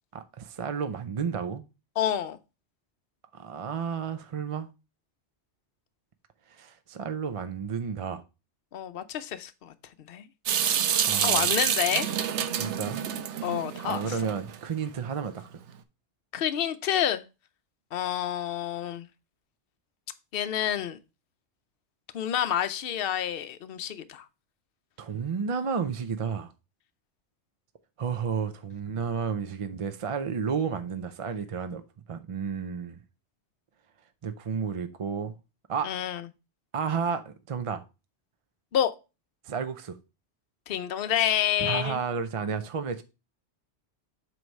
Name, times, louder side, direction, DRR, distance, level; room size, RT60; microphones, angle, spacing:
voice 1, 0.1-1.6 3.3-4.7 6.5-8.2 10.8-11.5 12.5-13.1 13.9-15.6 25.0-26.5 28.0-31.8 32.1-33.0 34.2-35.3 35.7-35.9 36.7-37.8 39.4-40.0 41.6-43.0, right 6 dB, 45° right, 0.4 m, -32 dB
voice 2, 2.0-2.4 8.7-9.7 10.1-10.3 11.2-12.1 13.4-14.0 16.3-17.2 17.9-19.1 20.3-21.0 22.1-24.3 35.8-36.2 38.7-38.9 40.7-42.0, left 10 dB, 60° left, 0.8 m, -28 dB
Water tap faucet / Sink (filling or washing) / Drip, 10.5-14.6, right 9 dB, 80° right, 1.0 m, -27 dB
7.8 x 3.2 x 5.3 m
omnidirectional pair, 1.2 m